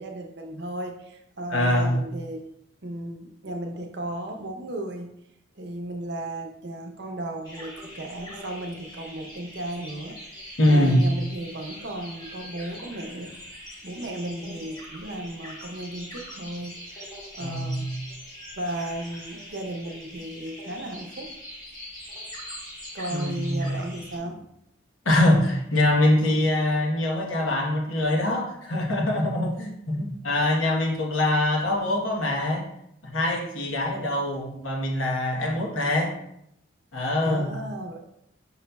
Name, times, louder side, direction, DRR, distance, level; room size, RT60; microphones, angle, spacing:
voice 1, 0.0-2.4 2.8-5.1 5.5-13.3 13.8-17.9 18.6-21.3 22.9-24.5 37.2-38.0, right 1 dB, 55° right, 3 dB, 0.6 m, -35 dB
voice 2, 1.5-2.0 10.6-11.0 17.4-17.9 23.1-23.8 25.0-32.6 33.0-36.1 36.9-37.6, left 1 dB, 85° left, -1 dB, 1.0 m, -23 dB
sound 1, 7.4-24.2, equal, 20° left, 1.1 m, -42 dB
5.5 x 4.0 x 2.2 m, 0.78 s
head